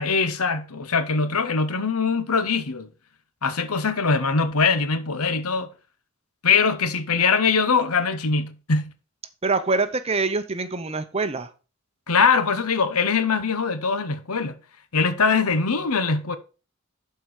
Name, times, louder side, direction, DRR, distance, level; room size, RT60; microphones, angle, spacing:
voice 1, 0.0-2.9 3.4-5.7 6.4-8.8 12.1-14.5 14.9-16.4, left 5 dB, 85° left, 1.0 m, -22 dB
voice 2, 9.4-11.5, right 3 dB, 30° right, 0.7 m, -25 dB
11.5 x 4.7 x 4.9 m
head